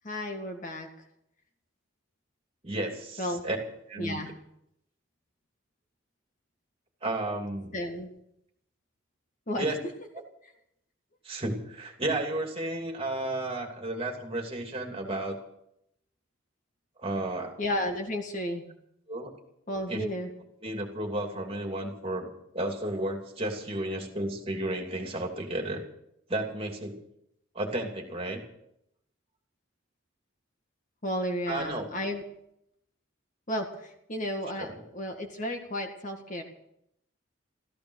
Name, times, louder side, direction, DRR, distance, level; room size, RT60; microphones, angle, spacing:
voice 1, 0.0-0.9 3.2-3.4 4.0-4.3 7.7-8.1 9.5-9.9 17.6-18.6 19.7-20.3 31.0-32.2 33.5-33.7 34.1-36.4, left 1 dB, 40° left, 4 dB, 1.9 m, -32 dB
voice 2, 2.6-3.6 3.9-4.2 7.0-7.8 9.6-9.8 11.2-15.4 17.0-17.5 19.1-19.3 19.9-20.0 20.6-25.8 26.3-26.9 27.5-28.4 31.5-31.9 34.6-34.8, right 1 dB, 30° right, 2 dB, 2.8 m, -32 dB
15.0 x 14.5 x 6.5 m, 0.77 s
head